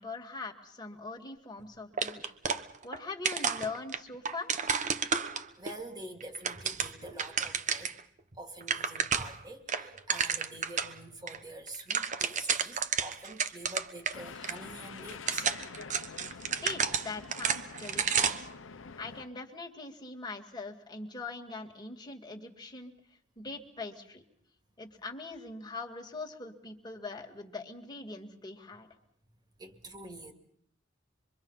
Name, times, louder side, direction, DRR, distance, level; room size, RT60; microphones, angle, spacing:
voice 1, 0.0-4.6 16.6-18.5 19.0-22.9 23.4-24.2 24.8-28.9, left 3 dB, 20° left, 2 dB, 2.3 m, -42 dB
sound 1, 2.0-3.0 3.2-5.7 6.2-8.0 8.3-8.4 8.6-9.4 9.7-10.9 11.3-11.4 11.7-14.1 14.4-14.5 15.1-18.5, right 6 dB, 40° right, 1.0 m, -31 dB
voice 2, 5.6-8.0 8.4-15.5 29.6-30.3, right 1 dB, 20° right, 5 dB, 2.4 m, -46 dB
sound 2, 14.1-19.2, left 5 dB, 85° left, 1.0 m, -46 dB
25.5 x 23.5 x 5.7 m, 0.66 s
head